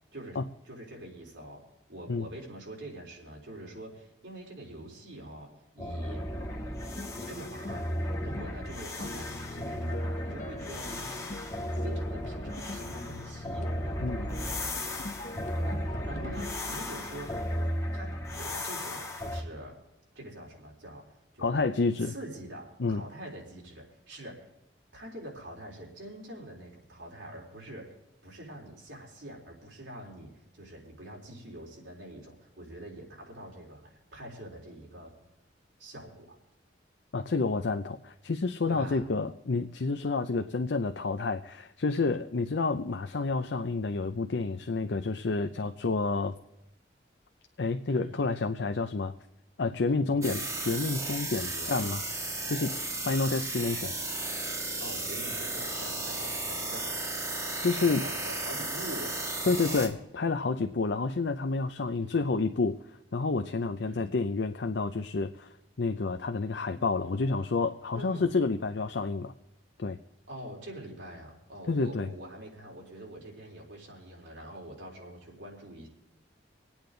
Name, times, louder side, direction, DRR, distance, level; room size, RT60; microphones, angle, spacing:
voice 1, 0.6-1.6 1.9-5.5 5.7-6.3 7.1-7.9 8.2-11.3 11.7-13.7 15.5-17.4 17.9-19.8 20.1-21.7 22.0-24.5 24.9-27.9 28.2-35.2 35.8-36.4 38.7-39.0 47.9-48.2 49.9-50.2 51.4-51.9 54.8-57.0 57.8-59.8 62.0-62.4 63.8-64.2 67.9-68.3 70.3-75.9, right 1 dB, 80° right, -2 dB, 3.9 m, -45 dB
sound 1, 5.8-19.4, left 1 dB, 15° left, 1.6 m, -35 dB
sound 2, 6.9-17.7, left 1 dB, 40° left, 0.9 m, -42 dB
voice 2, 21.4-22.1 22.8-23.0 37.1-46.3 47.6-49.1 49.6-52.0 52.5-52.8 53.0-53.9 57.6-58.1 59.5-62.8 63.1-65.5 65.8-69.3 69.8-70.0 71.7-72.1, left 3 dB, 65° left, 7 dB, 0.6 m, -29 dB
sound 3, 50.2-59.9, right 2 dB, 20° right, 1.7 m, -34 dB
25.5 x 8.8 x 3.9 m, 0.92 s
head